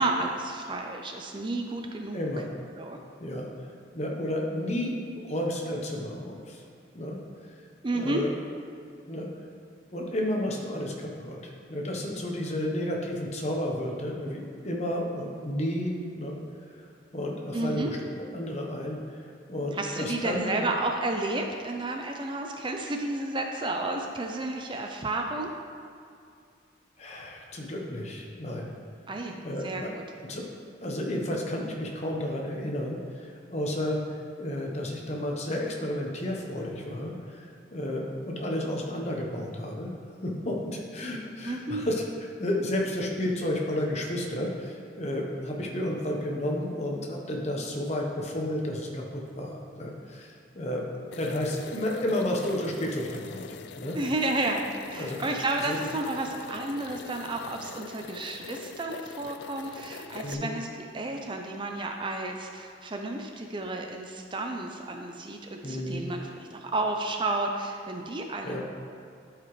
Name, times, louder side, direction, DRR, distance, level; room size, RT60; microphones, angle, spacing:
voice 1, 0.0-2.3 2.8-3.0 7.8-8.2 17.5-17.9 19.7-25.5 29.1-29.4 29.6-30.0 41.4-41.8 54.0-68.6, right 2 dB, 25° right, 3 dB, 0.4 m, -31 dB
voice 2, 2.1-2.5 3.2-3.7 3.9-5.0 5.2-6.6 6.9-7.2 7.9-8.3 9.1-9.3 9.9-16.4 16.7-16.8 17.1-18.0 18.3-20.7 27.0-28.7 29.4-29.9 30.3-30.4 30.8-34.0 34.4-39.9 40.2-42.0 42.4-50.8 51.2-53.4 53.8-54.0 55.0-55.2 55.6-55.8 60.1-60.5 65.6-66.0 68.4-68.6, left 1 dB, 35° left, -1 dB, 1.0 m, -32 dB
sound 1, 51.1-60.3, left 6 dB, 70° left, 0.3 m, -44 dB
11.5 x 4.9 x 3.2 m, 2.4 s
head